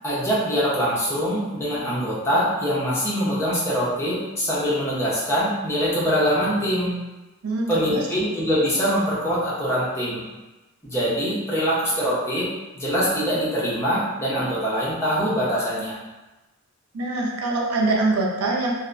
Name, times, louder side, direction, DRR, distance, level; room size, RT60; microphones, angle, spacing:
voice 1, 0.0-6.9 7.7-10.2 10.8-12.5 12.7-15.9, equal, 10° left, -9 dB, 0.7 m, -23 dB
voice 2, 7.4-8.0 16.9-18.7, right 2 dB, 85° right, -2 dB, 0.5 m, -23 dB
2.8 x 2.1 x 2.5 m, 1.1 s
head